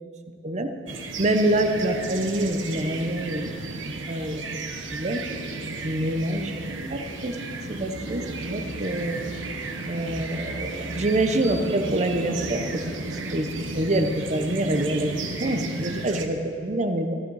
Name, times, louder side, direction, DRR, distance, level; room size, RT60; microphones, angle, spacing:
sound 1, 0.9-16.3, right 2 dB, 80° right, 1.1 m, -33 dB
voice 1, 1.2-4.6 4.9-5.2 5.8-6.5 6.9-7.4 7.7-9.2 9.9-12.8 13.3-17.1, right 1 dB, 40° right, 7 dB, 0.8 m, -26 dB
14.0 x 12.0 x 4.8 m, 2.4 s
head